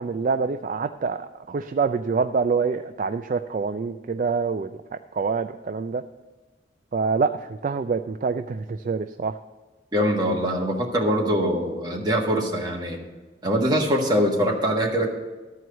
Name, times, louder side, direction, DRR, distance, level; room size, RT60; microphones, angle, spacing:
voice 1, 0.0-4.7 5.1-6.0 6.9-9.4, right 5 dB, 45° right, 8 dB, 0.3 m, -26 dB
voice 2, 9.9-13.0 13.4-15.1, equal, 25° right, -1 dB, 1.6 m, -23 dB
12.5 x 4.7 x 7.9 m, 1.3 s
head